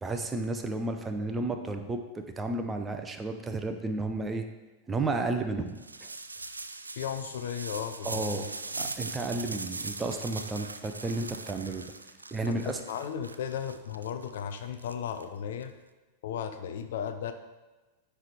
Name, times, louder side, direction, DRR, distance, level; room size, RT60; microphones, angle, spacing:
voice 1, 0.0-4.5 4.9-5.7 6.0-6.1 8.0-8.5 8.8-11.8 12.3-12.8, right 2 dB, 15° right, 6 dB, 0.7 m, -32 dB
sound 1, 5.7-15.6, right 3 dB, 80° right, 0.4 m, -40 dB
voice 2, 7.0-8.5 12.4-15.7 16.2-17.3, left 8 dB, 55° left, 8 dB, 0.5 m, -35 dB
9.5 x 3.5 x 4.8 m, 1.2 s
figure-of-eight pair, 90°, 0 cm